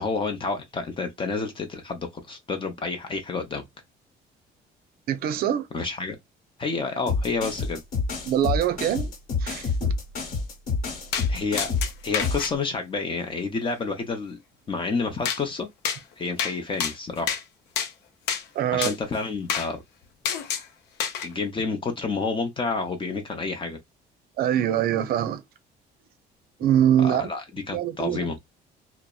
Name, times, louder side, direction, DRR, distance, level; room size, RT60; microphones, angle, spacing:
voice 1, 0.0-3.6 5.7-6.2 6.6-7.8 11.3-11.7 12.0-14.4 14.7-15.7 16.2-17.4 18.7-19.8 21.2-23.8 27.0-28.4, left 4 dB, 30° left, 0.6 m, -29 dB
voice 2, 5.1-5.7 8.3-9.1 9.4-9.9 18.6-18.9 24.4-25.4 26.6-27.3 27.7-28.2, right 10 dB, 65° right, 0.5 m, -23 dB
sound 1, 7.1-12.5, left 4 dB, 55° left, 1.2 m, -28 dB
sound 2, 11.1-11.3 11.6-12.5 15.3-15.4 15.8-16.0 16.4-16.5 16.8-17.4 17.8-17.9 18.3-18.4 18.8-19.0 19.5-19.7 20.3-20.7 21.0-21.3, left 7 dB, 80° left, 0.5 m, -28 dB
2.7 x 2.0 x 2.2 m
cardioid pair, 110°, 17 cm